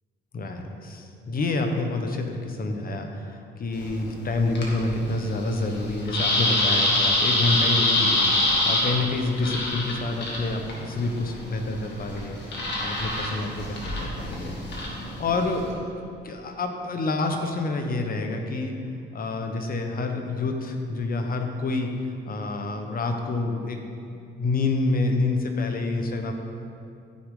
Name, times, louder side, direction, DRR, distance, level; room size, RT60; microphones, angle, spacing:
voice 1, 0.3-12.4 12.8-18.8 19.1-21.9 22.2-23.8 24.1-26.3, left 2 dB, 45° left, 4 dB, 1.2 m, -28 dB
sound 1, 3.7-15.7, left 1 dB, 65° left, 2.1 m, -26 dB
14.0 x 6.2 x 3.9 m, 2.5 s
cardioid pair, 90°, 20 cm